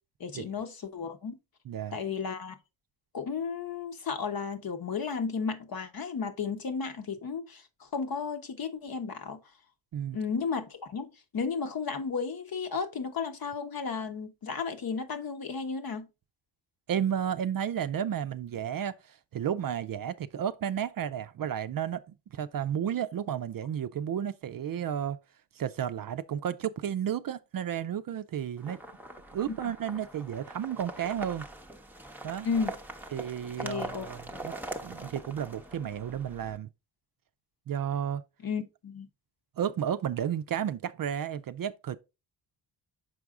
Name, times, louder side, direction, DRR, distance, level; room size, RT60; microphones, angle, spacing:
voice 1, 0.2-1.4 1.9-2.5 3.1-9.4 10.1-16.1 32.4-32.8 33.6-34.4 38.4-39.1, left 5 dB, 50° left, 1.1 m, -34 dB
voice 2, 1.7-2.0 9.9-10.2 16.9-25.2 25.5-28.8 29.3-31.5 32.2-32.5 33.1-34.5 34.8-36.7 37.7-38.2 39.6-42.0, right 9 dB, 50° right, 0.5 m, -32 dB
sound 1, 28.6-36.6, right 2 dB, 5° right, 0.7 m, -42 dB
6.2 x 4.7 x 3.6 m
wide cardioid pair, 110°, 46 cm